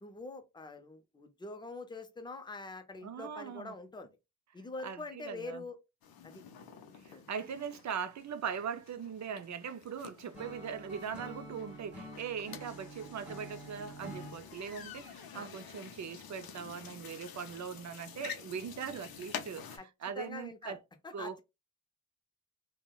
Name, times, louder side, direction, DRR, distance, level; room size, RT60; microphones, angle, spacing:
voice 1, 0.0-4.1 4.5-5.8 6.2-6.4 7.1-7.2 15.3-15.5 19.8-20.8 21.0-21.4, left 3 dB, 15° left, 0.4 m, -45 dB
voice 2, 3.0-3.7 4.8-5.6 7.0-20.8 21.1-21.4, right 7 dB, 55° right, 0.4 m, -40 dB
sound 1, 6.0-19.8, left 8 dB, 90° left, 0.6 m, -49 dB
Acoustic guitar / Strum, 10.3-14.4, right 1 dB, 5° right, 1.2 m, -47 dB
3.5 x 2.1 x 2.2 m
wide cardioid pair, 135°, 35 cm